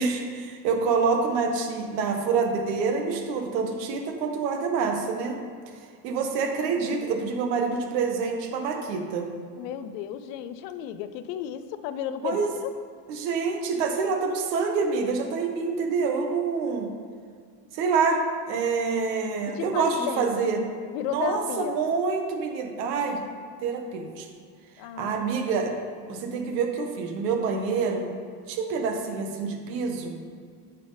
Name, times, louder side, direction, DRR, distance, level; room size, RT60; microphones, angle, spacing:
voice 1, 0.0-5.4 6.0-9.3 12.2-12.5 13.1-16.9 17.7-18.2 18.5-20.6 21.0-23.2 23.6-24.3 24.9-25.7 26.1-28.1 28.5-30.1, right 5 dB, 80° right, 3 dB, 1.6 m, -27 dB
voice 2, 9.6-12.7 19.5-20.4 20.9-21.8 24.8-25.3, left 10 dB, 85° left, 11 dB, 0.8 m, -33 dB
10.0 x 6.5 x 4.0 m, 2.1 s
cardioid pair, 145°, 49 cm